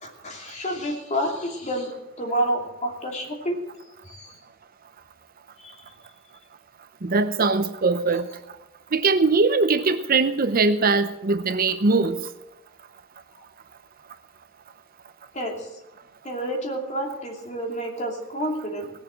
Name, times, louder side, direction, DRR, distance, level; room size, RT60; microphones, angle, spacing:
voice 1, 0.0-3.6 4.0-4.4 5.6-5.8 15.3-15.7 16.2-18.9, right 1 dB, 35° left, 1 dB, 2.7 m, -29 dB
voice 2, 7.0-8.3 8.9-12.2, right 3 dB, 50° right, 11 dB, 0.7 m, -21 dB
18.0 x 7.3 x 7.4 m, 0.94 s
head